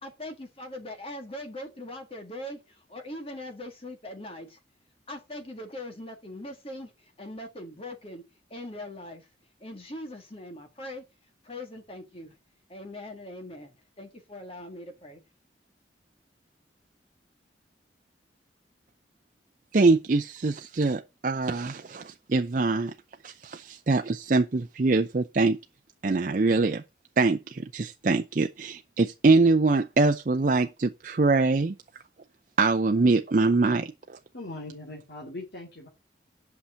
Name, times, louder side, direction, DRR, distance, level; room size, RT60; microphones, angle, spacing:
voice 1, 0.0-4.6 5.1-8.2 8.5-9.3 9.6-11.0 11.4-12.3 12.7-15.2, left 1 dB, 30° left, 1.7 m, -41 dB
voice 2, 19.7-22.9 23.2-25.6 26.0-26.8 27.2-31.7 32.6-34.2, right 3 dB, 45° right, 0.5 m, -24 dB
voice 3, 34.3-35.9, left 2 dB, 60° left, 2.4 m, -40 dB
8.3 x 5.7 x 7.4 m
head